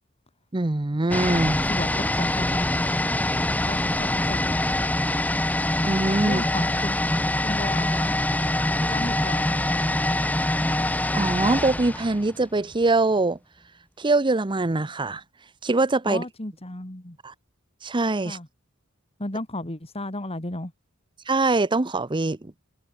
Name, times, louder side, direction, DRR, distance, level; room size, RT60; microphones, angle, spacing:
voice 1, 0.5-1.6 5.8-6.4 11.1-13.4 14.0-15.2 15.6-16.2 17.2-17.3 17.8-18.4 21.3-22.5, right 2 dB, 20° right, 0.7 m, -23 dB
sound 1, 1.1-12.8 13.1-13.2, left 1 dB, 5° left, 1.0 m, -24 dB
voice 2, 1.7-4.8 6.2-8.1 8.8-10.1 16.1-17.2 18.2-18.5 19.2-20.7, left 1 dB, 30° left, 2.5 m, -35 dB
head